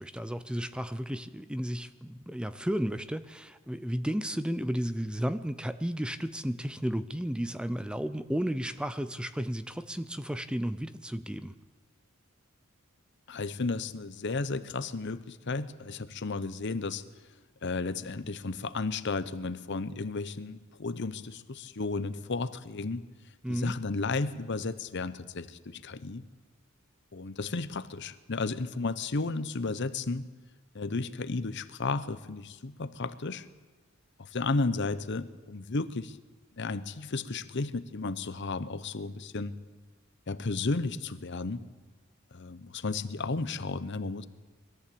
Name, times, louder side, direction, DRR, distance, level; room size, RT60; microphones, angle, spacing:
voice 1, 0.0-11.5 23.4-23.8, equal, 5° right, 13 dB, 0.5 m, -33 dB
voice 2, 13.3-17.0 17.6-23.1 23.5-26.2 27.1-30.2 30.7-33.5 34.2-36.2 36.6-39.5 40.3-41.6 42.3-44.3, left 3 dB, 55° left, 14 dB, 0.9 m, -33 dB
21.5 x 14.0 x 8.6 m, 1.4 s
head